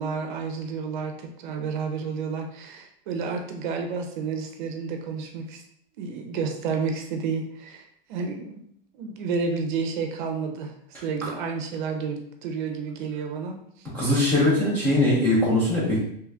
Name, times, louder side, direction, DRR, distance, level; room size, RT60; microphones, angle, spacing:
voice 1, 0.0-5.6 6.0-8.6 8.9-13.9 14.6-14.9, right 5 dB, 55° right, 4 dB, 0.6 m, -31 dB
voice 2, 13.9-16.0, left 1 dB, 5° left, -7 dB, 0.4 m, -21 dB
3.1 x 2.4 x 3.3 m, 0.70 s
supercardioid pair, 160°, 30 cm